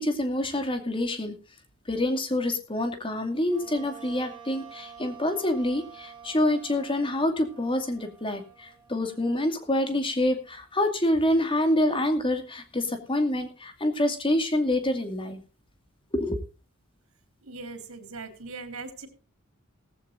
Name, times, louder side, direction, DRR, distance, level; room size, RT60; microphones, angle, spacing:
voice 1, 0.0-1.3 1.9-15.4 16.1-16.4, left 1 dB, 25° left, 7 dB, 2.4 m, -26 dB
Wind instrument woodwind instrument, 3.5-10.9, right 7 dB, 20° right, 8.0 m, -49 dB
voice 2, 17.4-19.1, right 3 dB, 80° right, 9 dB, 3.6 m, -40 dB
17.5 x 15.0 x 2.6 m, 0.33 s
head